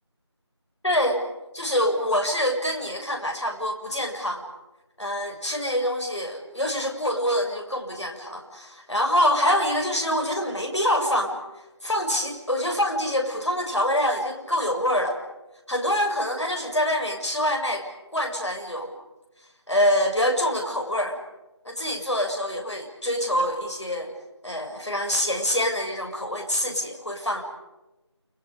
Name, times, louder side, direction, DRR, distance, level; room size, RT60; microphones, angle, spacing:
voice 1, 0.8-1.2 1.5-4.4 5.0-11.4 11.8-15.2 15.7-17.9 18.1-18.9 19.7-21.2 21.6-24.1 24.4-27.4, equal, 75° left, 2 dB, 7.5 m, -25 dB
30.0 x 27.0 x 5.1 m, 1.0 s
figure-of-eight pair, 170°, 15 cm